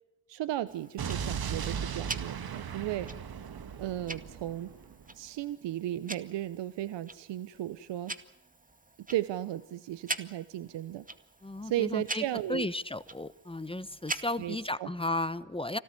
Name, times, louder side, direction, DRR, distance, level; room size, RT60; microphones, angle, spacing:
voice 1, 0.3-3.1 3.8-4.7 5.1-8.1 9.1-11.0 11.6-12.7 14.4-14.9, right 13 dB, 70° right, 14 dB, 1.0 m, -35 dB
Tick-tock, 0.7-14.7, right 2 dB, 20° right, 2.2 m, -44 dB
Explosion, 1.0-5.0, right 7 dB, 55° right, 1.9 m, -37 dB
voice 2, 11.4-12.2 12.5-15.8, left 2 dB, 10° left, 15 dB, 1.1 m, -34 dB
25.5 x 17.5 x 9.8 m, 0.94 s
supercardioid pair, 55°, 44 cm